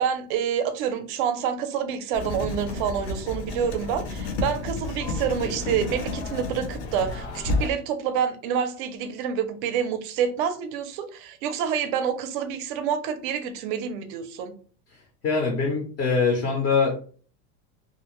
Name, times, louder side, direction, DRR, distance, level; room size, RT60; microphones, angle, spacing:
voice 1, 0.0-14.5, right 8 dB, 50° right, 9 dB, 0.4 m, -27 dB
Writing, 2.1-7.7, left 3 dB, 80° left, 0.8 m, -31 dB
voice 2, 15.2-17.0, left 4 dB, 30° left, 0 dB, 0.4 m, -23 dB
2.4 x 2.0 x 2.9 m, 0.42 s
cardioid pair, 180°, 33 cm